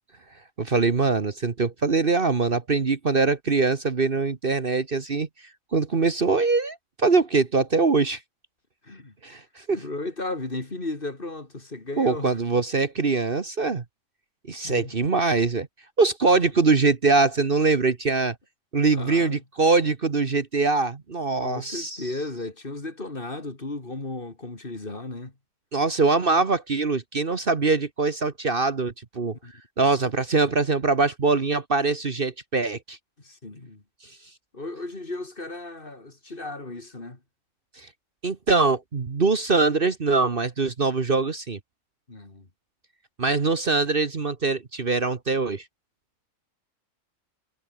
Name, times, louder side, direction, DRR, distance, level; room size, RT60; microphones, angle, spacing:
voice 1, 0.6-5.3 5.7-8.2 9.2-9.8 12.0-13.8 14.5-15.7 16.0-18.3 18.7-22.1 25.7-29.4 29.8-33.0 37.8-37.9 38.2-41.6 43.2-45.6, right 4 dB, 45° right, 1.5 m, -23 dB
voice 2, 9.7-12.3 14.6-15.1 18.9-19.4 21.4-25.3 29.4-29.5 33.2-33.8 34.5-37.2 42.1-42.5, left 2 dB, 40° left, 3.1 m, -35 dB
omnidirectional pair, 1.4 m